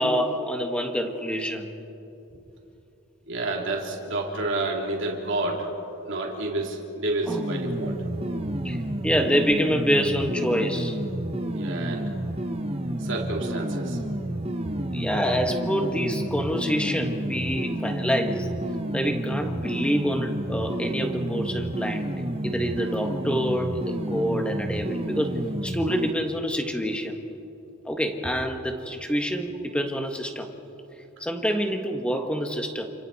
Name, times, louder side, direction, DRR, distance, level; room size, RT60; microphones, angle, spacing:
voice 1, 0.0-1.7 7.3-7.4 8.6-8.8 9.0-11.0 14.9-18.6 18.9-27.2 27.8-30.5 31.2-32.9, equal, 5° left, 4 dB, 1.5 m, -27 dB
voice 2, 3.3-5.7 6.1-8.2 11.5-12.1 13.0-14.0 14.6-14.8, right 2 dB, 60° right, -1 dB, 3.2 m, -30 dB
sound 1, 7.3-26.1, right 1 dB, 30° right, 1.2 m, -30 dB
29.0 x 27.5 x 4.3 m, 2.9 s
head